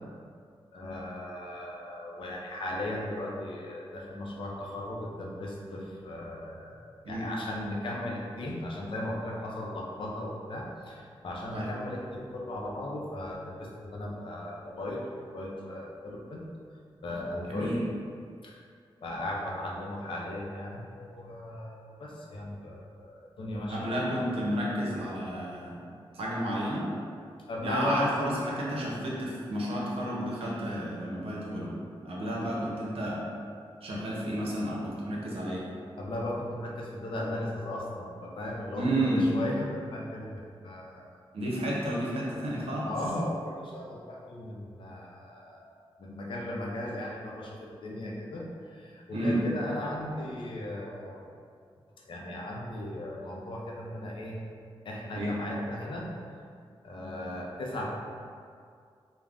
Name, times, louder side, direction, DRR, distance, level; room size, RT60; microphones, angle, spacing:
voice 1, 0.7-16.4 17.0-17.7 18.4-18.6 19.0-23.9 27.5-28.0 36.0-40.3 40.6-41.2 42.8-45.7 46.0-51.2 52.1-54.4 54.8-56.1 56.8-57.9, left 1 dB, 60° left, -2 dB, 0.4 m, -37 dB
voice 2, 23.7-25.8 26.1-26.9 27.6-33.2 33.8-35.7 38.8-39.3 41.3-42.9 49.1-49.4 55.1-55.4, equal, 90° right, -5 dB, 0.6 m, -31 dB
3.3 x 2.0 x 2.4 m, 2.3 s
wide cardioid pair, 150°, 10 cm